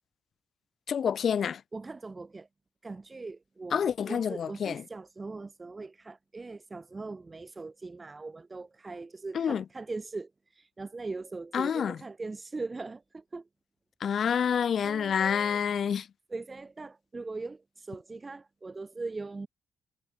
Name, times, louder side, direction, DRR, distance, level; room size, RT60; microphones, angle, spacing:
voice 1, 0.9-1.6 3.7-4.8 9.3-9.6 11.5-12.0 14.0-16.1, left 7 dB, 60° left, 1.2 m, -28 dB
voice 2, 1.7-2.5 2.8-13.5 14.8-15.6 16.3-19.5, right 3 dB, 25° right, 1.7 m, -40 dB
cardioid pair, 70°, 0 cm